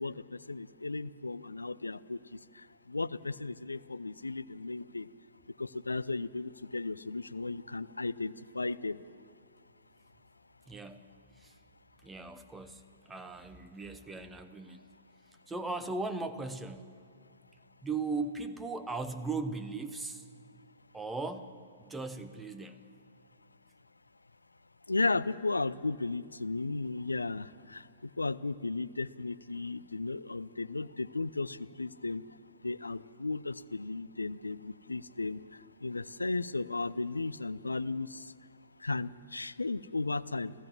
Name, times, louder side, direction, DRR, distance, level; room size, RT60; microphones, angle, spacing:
voice 1, 0.0-2.2 2.9-5.1 5.6-9.0 24.9-27.8 28.2-32.2 32.6-35.4 35.8-38.3 38.8-40.5, left 3 dB, 80° left, 15 dB, 0.5 m, -35 dB
voice 2, 10.7-11.6 12.0-14.8 15.5-16.9 17.8-20.3 20.9-22.8, right 3 dB, 10° right, 11 dB, 1.0 m, -38 dB
27.5 x 14.5 x 7.5 m, 2.3 s
figure-of-eight pair, 105°, 0 cm